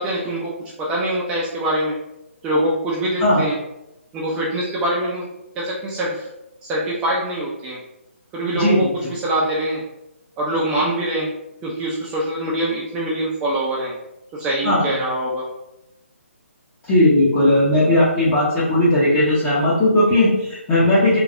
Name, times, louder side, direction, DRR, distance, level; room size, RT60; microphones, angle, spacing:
voice 1, 0.0-1.9 2.4-3.6 4.1-5.3 5.6-6.3 6.6-7.8 8.3-9.8 10.4-11.3 11.6-13.9 14.3-15.5, right 1 dB, 15° right, -5 dB, 0.4 m, -24 dB
voice 2, 16.9-21.2, left 1 dB, 20° left, -9 dB, 0.7 m, -17 dB
3.1 x 2.6 x 2.4 m, 0.89 s
figure-of-eight pair, 145°, 7 cm